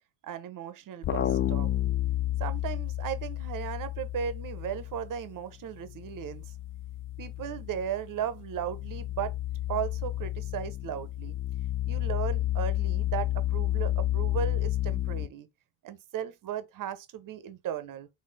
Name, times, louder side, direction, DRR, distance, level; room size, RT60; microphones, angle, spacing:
voice 1, 0.2-1.7 2.4-6.4 7.2-9.3 9.7-11.3 11.9-15.5 15.8-18.1, right 9 dB, 45° right, 1.0 m, -36 dB
sound 1, 1.0-5.4 5.7-15.3, left 14 dB, 30° left, 0.4 m, -31 dB
4.3 x 2.9 x 4.1 m
supercardioid pair, 80°, 46 cm